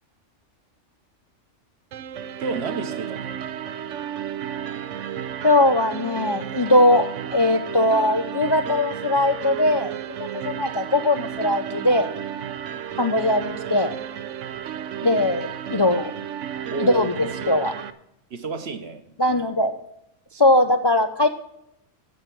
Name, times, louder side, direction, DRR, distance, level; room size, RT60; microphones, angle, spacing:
sound 1, 1.9-17.9, right 9 dB, 85° right, 1.0 m, -33 dB
voice 1, 2.4-3.3 16.7-17.4 18.3-19.0, right 4 dB, 60° right, 7 dB, 1.3 m, -31 dB
voice 2, 5.4-7.1 7.3-12.1 13.0-13.9 15.0-16.1 16.8-17.7 19.2-19.8 20.3-21.3, left 1 dB, 30° left, 6 dB, 0.4 m, -20 dB
12.5 x 4.6 x 8.4 m, 0.80 s
omnidirectional pair, 1.2 m